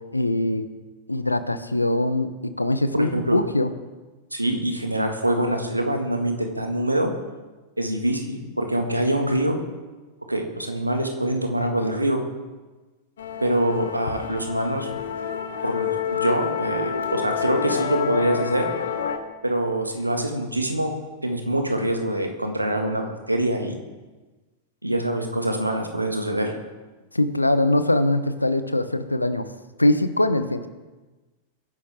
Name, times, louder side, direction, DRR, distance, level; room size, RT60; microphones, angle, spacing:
voice 1, 0.1-0.7 1.1-3.7 27.1-29.5 29.8-30.7, left 1 dB, 85° left, 12 dB, 0.9 m, -22 dB
voice 2, 3.0-3.4 4.3-7.1 7.8-9.6 10.3-12.2 13.4-14.9 15.6-18.7 19.4-20.9 21.2-23.8 24.8-26.5, right 1 dB, 85° right, 4 dB, 1.9 m, -24 dB
Musical instrument, 13.2-19.2, left 7 dB, 65° left, 1.3 m, -28 dB
22.0 x 11.5 x 3.7 m, 1.2 s
figure-of-eight pair, 90°, 0 cm